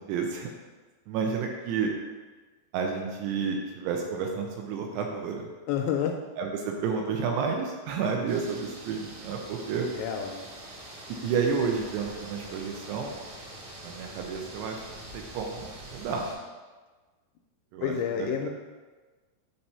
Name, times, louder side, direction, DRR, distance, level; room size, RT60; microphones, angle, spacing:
voice 1, 0.1-0.5 1.1-1.9 2.7-5.5 6.4-9.9 11.1-13.2 13.8-16.3 17.7-18.3, right 5 dB, 80° right, 2 dB, 2.6 m, -31 dB
voice 2, 5.7-6.1 10.0-10.5 17.8-18.5, left 8 dB, 85° left, 3 dB, 2.5 m, -29 dB
sound 1, 8.3-16.4, right 1 dB, 60° right, 3.1 m, -44 dB
8.6 x 3.0 x 5.4 m, 1.3 s
omnidirectional pair, 5.2 m